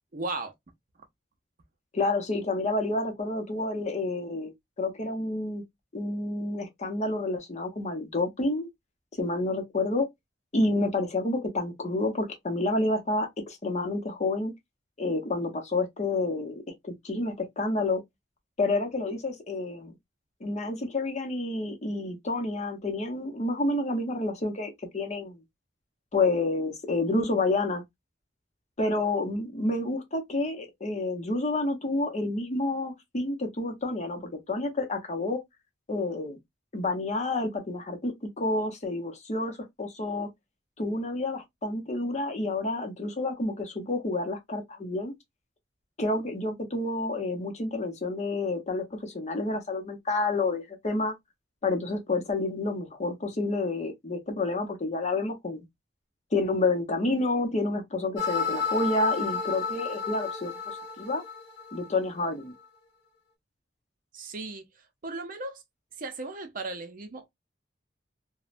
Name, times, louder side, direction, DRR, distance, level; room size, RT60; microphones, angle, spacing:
voice 1, 0.1-0.5 64.1-64.6 65.0-65.6 66.0-67.2, right 3 dB, 50° right, 0.6 m, -36 dB
voice 2, 1.9-4.5 4.8-5.6 5.9-8.7 9.2-10.1 10.5-14.5 15.0-18.0 18.6-19.9 20.4-25.4 26.1-27.8 28.8-35.4 35.9-36.4 36.7-40.3 40.8-45.1 46.0-51.1 51.6-55.6 56.3-61.2 61.7-62.5, left 2 dB, 40° left, 0.7 m, -29 dB
sound 1, 58.2-62.2, left 5 dB, 90° left, 1.1 m, -32 dB
3.1 x 2.1 x 2.4 m
head